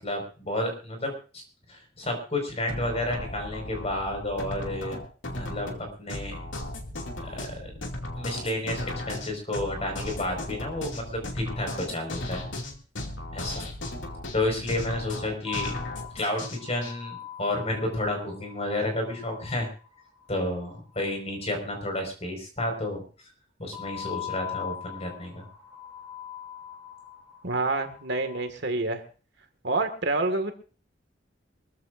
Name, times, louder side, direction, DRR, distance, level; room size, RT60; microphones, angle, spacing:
voice 1, 0.0-1.4 1.7-5.0 5.3-6.4 7.0-7.7 8.1-12.4 13.3-13.7 14.3-15.8 16.1-19.7 20.3-23.0 23.6-25.4, left 1 dB, 35° left, 3 dB, 5.0 m, -31 dB
sound 1, 2.7-16.9, left 1 dB, 80° left, 2.4 m, -36 dB
sound 2, 15.5-20.8 23.7-28.5, left 10 dB, 15° right, 4.5 m, -41 dB
voice 2, 27.4-29.0 29.6-30.5, right 2 dB, 65° right, 7 dB, 1.9 m, -27 dB
23.5 x 14.5 x 2.6 m, 0.37 s
head